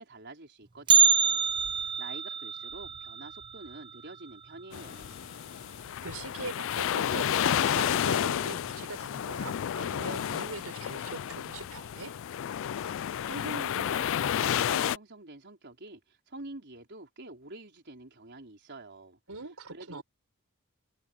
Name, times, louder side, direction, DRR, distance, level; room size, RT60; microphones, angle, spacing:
voice 1, 0.0-1.4 1.7-5.2 12.9-19.2 19.7-20.0, right 2 dB, 50° right, 4.5 m, -46 dB
Bell, 0.9-5.0 5.3-5.4 5.8-5.9 6.7-6.8 7.6-7.9 8.2-8.3, right 6 dB, 20° right, 0.4 m, -27 dB
sound 1, 4.7-15.0, left 9 dB, 60° left, 0.3 m, -31 dB
voice 2, 6.0-12.1 19.3-20.0, right 3 dB, 80° right, 4.8 m, -42 dB
head